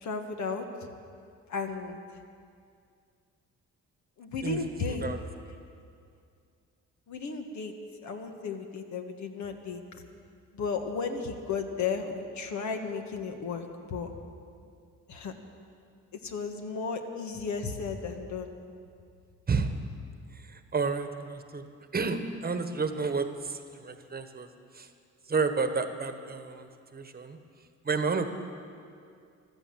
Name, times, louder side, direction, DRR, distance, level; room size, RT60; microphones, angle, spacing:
voice 1, 0.0-0.6 1.5-2.0 4.2-5.0 7.1-7.7 8.0-9.8 10.5-14.1 15.1-15.3 16.2-18.5, left 5 dB, 70° left, 5 dB, 1.6 m, -34 dB
voice 2, 4.9-5.2 19.5-19.7 20.3-24.5 24.7-24.9 25.3-27.4 27.8-28.3, right 4 dB, 30° right, 8 dB, 1.2 m, -31 dB
15.0 x 12.5 x 7.6 m, 2.4 s
cardioid pair, 90°, 30 cm